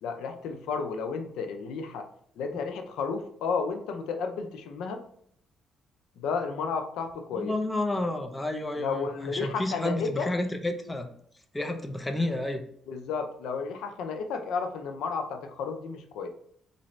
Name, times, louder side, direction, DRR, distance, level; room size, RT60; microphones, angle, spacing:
voice 1, 0.0-2.1 2.4-5.0 6.2-7.5 8.8-10.3 12.9-16.3, left 5 dB, 85° left, 6 dB, 0.5 m, -32 dB
voice 2, 7.3-11.1 11.5-12.6, left 1 dB, 15° left, 5 dB, 0.6 m, -30 dB
4.0 x 2.6 x 3.1 m, 0.66 s
cardioid pair, 90°, 0 cm